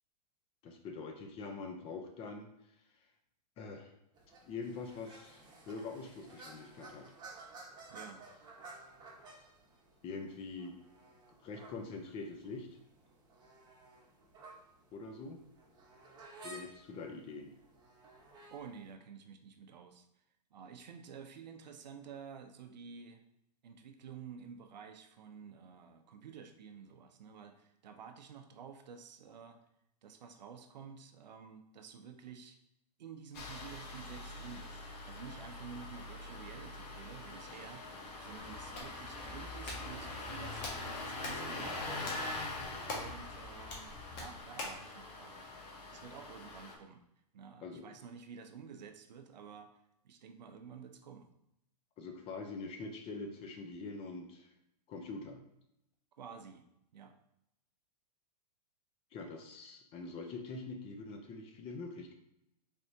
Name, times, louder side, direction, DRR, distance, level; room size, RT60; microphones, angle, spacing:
voice 1, 0.6-2.5 3.6-3.9 4.5-7.1 10.0-10.8 11.4-12.7 14.9-15.4 16.4-17.5 47.6-48.0 52.0-54.5 54.9-55.4 59.1-62.1, left 3 dB, 25° left, 4 dB, 0.6 m, -44 dB
sound 1, 4.1-18.9, right 3 dB, 20° right, 0.9 m, -55 dB
voice 2, 7.9-8.2 18.5-20.1 20.5-23.2 23.6-29.6 30.0-32.6 33.0-34.8 35.0-42.0 42.9-43.9 44.2-45.4 45.9-47.0 47.3-49.7 50.0-51.3 56.2-56.6 56.9-57.1, right 6 dB, 85° right, 6 dB, 0.6 m, -51 dB
Engine starting, 33.3-46.7, left 2 dB, 70° left, 1.0 m, -44 dB
Hands, 38.4-44.9, left 2 dB, 40° left, 1.3 m, -46 dB
4.5 x 3.4 x 2.7 m, 0.81 s
hypercardioid pair, 135°, 21 cm